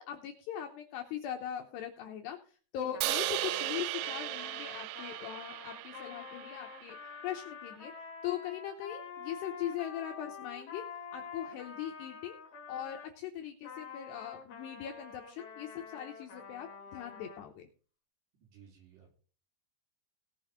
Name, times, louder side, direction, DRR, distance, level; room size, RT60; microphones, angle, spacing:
voice 1, 0.0-7.0 7.2-7.9 8.2-10.8 11.1-12.4 12.7-17.7, left 10 dB, 75° left, 3 dB, 2.6 m, -40 dB
Trumpet, 2.9-13.1 13.6-17.4, left 6 dB, 50° left, 2.8 m, -47 dB
Crash cymbal, 3.0-7.2, right 16 dB, 85° right, 3.4 m, -37 dB
voice 2, 18.4-19.1, right 8 dB, 55° right, 0 dB, 5.8 m, -57 dB
18.0 x 6.3 x 5.1 m, 0.40 s
omnidirectional pair, 5.9 m